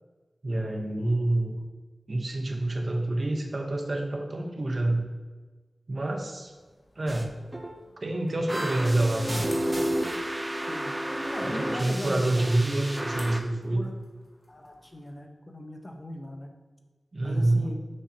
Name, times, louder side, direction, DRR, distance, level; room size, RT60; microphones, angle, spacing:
voice 1, 0.4-1.6 2.1-5.1 5.9-6.5 7.0-7.3 8.0-9.5 11.4-13.8 17.1-17.7, right 2 dB, 50° right, 3 dB, 0.8 m, -27 dB
sound 1, 6.0-15.2, left 1 dB, 70° left, 1.1 m, -54 dB
sound 2, 7.1-7.2 7.5-7.8 8.5-13.4, right 1 dB, 20° right, 0.5 m, -31 dB
voice 2, 11.3-12.4 13.7-13.9 14.5-16.5 17.2-17.8, left 1 dB, 35° left, 3 dB, 0.8 m, -38 dB
6.5 x 5.6 x 2.8 m, 1.3 s
wide cardioid pair, 60°, 0 cm